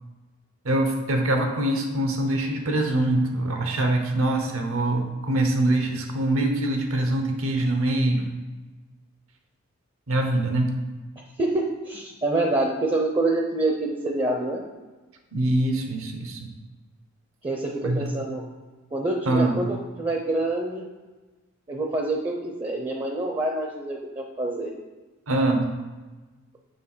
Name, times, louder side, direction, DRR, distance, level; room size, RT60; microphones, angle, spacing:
voice 1, 0.6-8.4 10.1-10.7 15.3-16.4 17.8-18.1 19.3-19.6 25.3-25.7, right 1 dB, 70° right, 4 dB, 1.0 m, -24 dB
voice 2, 11.4-14.6 17.4-18.4 18.9-20.8 21.7-24.7, right 2 dB, 25° right, 1 dB, 0.6 m, -26 dB
6.8 x 3.4 x 6.0 m, 1.2 s
head